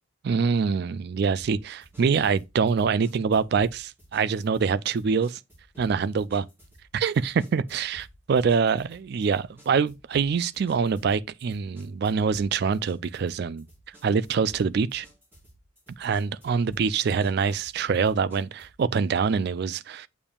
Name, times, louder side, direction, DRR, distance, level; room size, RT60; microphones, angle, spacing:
voice 1, 0.2-5.4 5.8-6.4 6.9-13.7 14.0-15.1 16.0-20.1, right 5 dB, 50° right, 0.3 m, -25 dB
sound 1, 1.4-18.8, right 1 dB, 10° right, 4.2 m, -54 dB
7.1 x 6.9 x 2.3 m
head